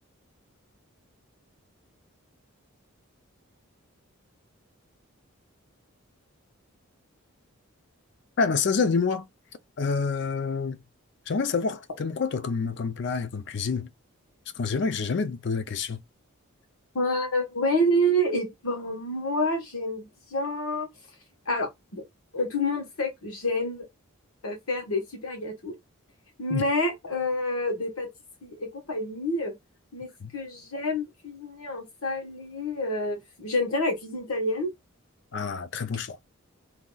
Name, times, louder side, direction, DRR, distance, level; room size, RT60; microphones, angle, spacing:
voice 1, 8.4-9.3 9.8-10.8 11.3-13.9 14.5-16.0 26.5-26.6 30.2-30.3 35.3-36.2, left 5 dB, 55° left, 0.4 m, -27 dB
voice 2, 16.9-20.9 21.5-22.0 22.3-23.8 24.4-25.7 26.4-28.1 28.4-29.5 29.9-30.1 30.3-34.7, left 1 dB, 85° left, 1.2 m, -28 dB
2.8 x 2.3 x 3.8 m
head